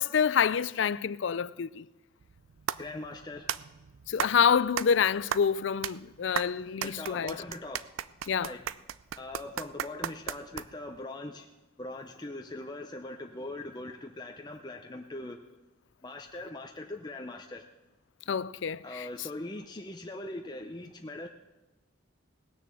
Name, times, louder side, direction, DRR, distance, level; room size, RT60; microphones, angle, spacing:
voice 1, 0.0-1.8 4.1-7.3 8.3-8.5 18.3-19.1, left 7 dB, 65° left, 0.4 m, -27 dB
sound 1, 2.2-11.0, right 9 dB, 85° right, 0.5 m, -37 dB
voice 2, 2.8-3.6 6.8-8.0 8.4-8.7 9.2-11.5 11.8-15.4 16.0-17.7 18.8-21.3, left 2 dB, 20° left, 0.6 m, -41 dB
18.5 x 6.8 x 7.6 m
head